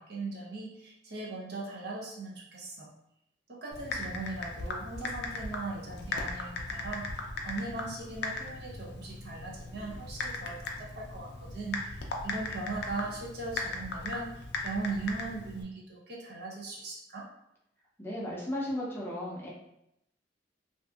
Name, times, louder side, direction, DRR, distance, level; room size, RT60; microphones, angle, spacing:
voice 1, 0.0-2.9 3.5-7.1 7.4-12.0 12.2-17.3, right 3 dB, 60° right, -3 dB, 0.6 m, -39 dB
Typing, 3.7-15.6, left 3 dB, 65° left, 0.4 m, -38 dB
voice 2, 18.0-19.5, left 1 dB, 15° left, -5 dB, 0.5 m, -35 dB
2.6 x 2.4 x 2.3 m, 0.82 s
head